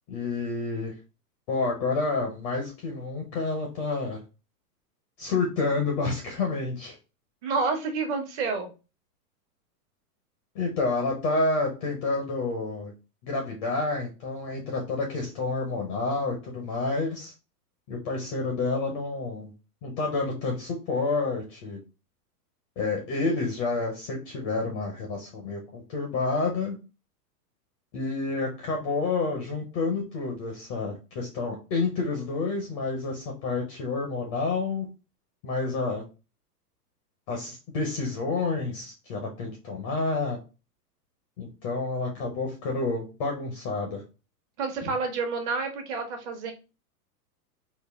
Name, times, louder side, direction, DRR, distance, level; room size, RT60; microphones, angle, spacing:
voice 1, 0.1-0.9 1.5-4.2 5.2-7.0 10.5-12.9 13.2-17.3 17.9-19.5 19.8-21.8 22.8-26.7 27.9-34.9 35.4-36.0 37.3-40.4 41.4-44.0, left 3 dB, 20° left, 1 dB, 0.4 m, -29 dB
voice 2, 7.4-8.7 44.6-46.5, right 4 dB, 45° right, 4 dB, 1.1 m, -29 dB
3.8 x 2.1 x 3.2 m, 0.30 s
hypercardioid pair, 135°, 48 cm